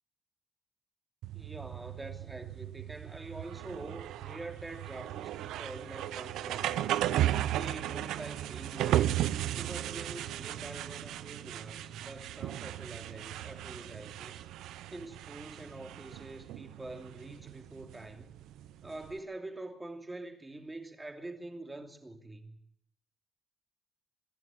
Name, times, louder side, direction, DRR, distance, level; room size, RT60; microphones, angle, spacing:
sound 1, 1.2-19.2, right 13 dB, 85° right, 0.8 m, -36 dB
voice 1, 1.3-6.9 7.5-9.2 9.5-14.4 14.9-18.3 18.8-22.6, right 2 dB, 15° right, 2.9 m, -45 dB
24.5 x 11.0 x 9.8 m
cardioid pair, 90°, 0 cm